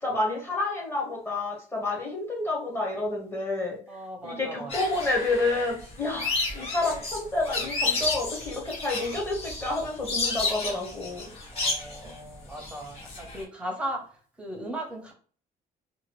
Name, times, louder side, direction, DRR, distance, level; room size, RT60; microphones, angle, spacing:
voice 1, 0.0-3.8 4.2-11.3, left 2 dB, 15° left, -1 dB, 0.9 m, -29 dB
voice 2, 3.9-4.7 11.5-14.0 14.4-15.1, right 1 dB, 10° right, 1 dB, 0.7 m, -37 dB
sound 1, 4.7-13.4, left 3 dB, 40° left, 0.9 m, -32 dB
2.8 x 2.3 x 3.0 m, 0.43 s
cardioid pair, 175°, 15 cm